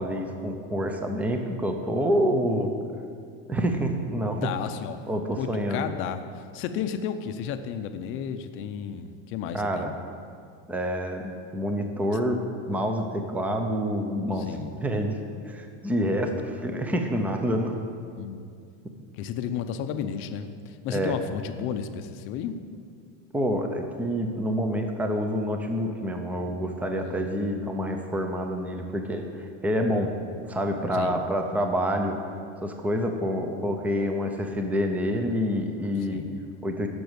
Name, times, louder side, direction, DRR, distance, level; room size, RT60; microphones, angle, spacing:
voice 1, 0.0-2.7 3.5-4.5 5.1-5.9 9.5-9.9 10.7-12.4 12.7-14.5 14.8-15.2 15.5-17.7 20.9-21.1 23.3-30.1 30.4-32.2 32.6-36.2 36.6-36.9, equal, 5° right, 4 dB, 0.6 m, -27 dB
voice 2, 4.3-5.0 5.4-10.0 14.4-14.8 18.2-18.4 19.2-22.6 27.0-27.4 30.9-31.2 36.1-36.5, left 8 dB, 35° left, 8 dB, 0.6 m, -33 dB
14.0 x 6.2 x 8.0 m, 2.3 s
cardioid pair, 170°, 36 cm